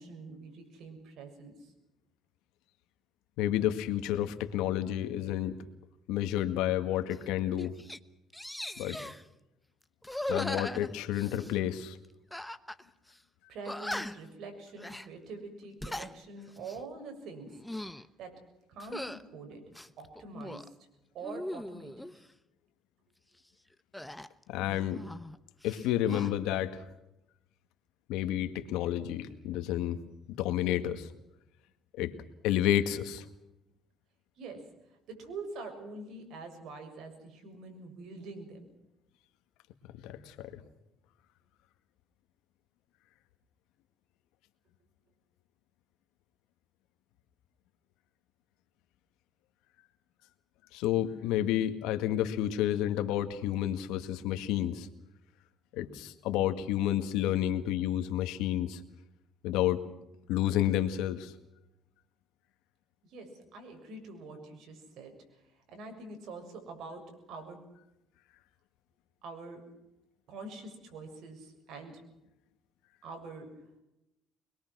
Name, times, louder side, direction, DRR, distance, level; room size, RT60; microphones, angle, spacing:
voice 1, 0.0-1.7 13.5-18.3 18.7-19.7 20.0-20.7 21.1-21.9 34.4-34.6 35.1-38.7 63.0-65.1 65.7-67.6 69.2-69.7 70.3-72.0 73.0-73.5, right 3 dB, 70° right, 5 dB, 6.8 m, -45 dB
voice 2, 3.4-5.6 6.1-7.8 8.8-9.0 10.3-12.0 24.5-25.0 25.6-26.8 28.1-30.0 30.3-31.1 31.9-32.1 32.4-33.2 40.0-40.6 50.7-54.9 55.7-58.8 59.4-59.8 60.3-61.3, left 12 dB, 90° left, 9 dB, 1.9 m, -30 dB
sound 1, 7.1-7.3 7.6-8.0 8.3-9.2 10.0-11.5 12.3-12.8 13.1-13.2 13.6-14.3 14.8-15.1 15.6-16.1 16.6-16.8 17.5-18.1 18.8-19.2 19.7-20.7 21.2-22.1 23.9-25.4 25.6-26.3, left 1 dB, 5° left, 1.0 m, -39 dB
24.5 x 22.0 x 6.2 m, 0.89 s
cardioid pair, 105°, 0 cm